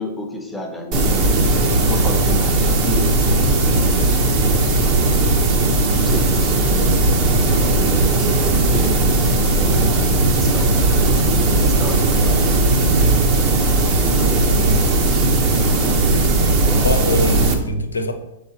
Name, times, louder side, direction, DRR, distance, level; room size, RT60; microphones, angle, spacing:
voice 1, 0.0-3.1 3.7-4.3 4.9-7.0 7.8-9.1 9.6-12.5 12.8-13.2 14.7-16.9, left 1 dB, 5° left, 2 dB, 0.9 m, -33 dB
sound 1, 0.9-17.5, right 2 dB, 40° right, 1.0 m, -17 dB
voice 2, 12.9-13.4 16.7-18.1, left 1 dB, 90° left, 7 dB, 0.7 m, -24 dB
6.7 x 4.9 x 2.9 m, 0.94 s
hypercardioid pair, 115°, 0 cm